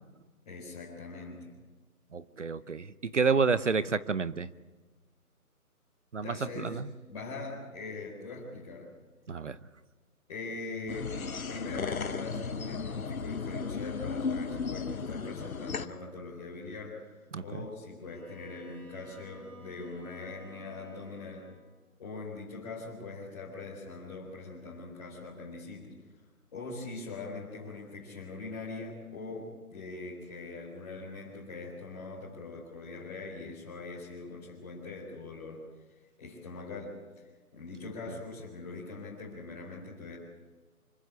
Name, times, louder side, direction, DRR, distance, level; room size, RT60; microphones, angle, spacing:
voice 1, 0.5-1.5 6.2-6.8 7.1-8.9 10.3-21.5 22.0-25.9 26.5-35.7 36.2-37.3 37.5-40.2, left 3 dB, 25° left, -6 dB, 4.2 m, -42 dB
voice 2, 2.1-4.5 6.1-6.9 9.3-9.6 17.3-17.4, right 5 dB, 50° right, 16 dB, 0.8 m, -29 dB
sound 1, 10.9-15.9, left 5 dB, 65° left, 1.4 m, -35 dB
Bowed string instrument, 18.0-21.7, right 1 dB, 20° right, 3.1 m, -54 dB
25.5 x 15.0 x 8.2 m, 1.3 s
hypercardioid pair, 170°, 45 cm